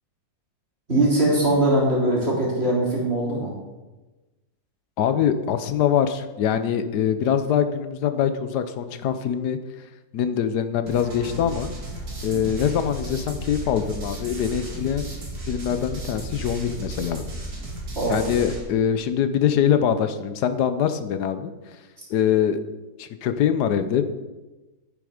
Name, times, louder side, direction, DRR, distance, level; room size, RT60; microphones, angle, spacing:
voice 1, 0.9-3.5 12.3-12.6 18.0-18.2, right 1 dB, 40° right, -4 dB, 3.6 m, -21 dB
voice 2, 5.0-9.6 10.1-11.7 12.2-15.1 15.5-17.3 18.1-21.5 22.1-22.6 23.0-24.0, left 8 dB, 90° left, 10 dB, 1.4 m, -23 dB
sound 1, 10.9-18.6, right 1 dB, 65° right, 2.8 m, -34 dB
10.5 x 9.0 x 5.0 m, 1.1 s
omnidirectional pair, 1.7 m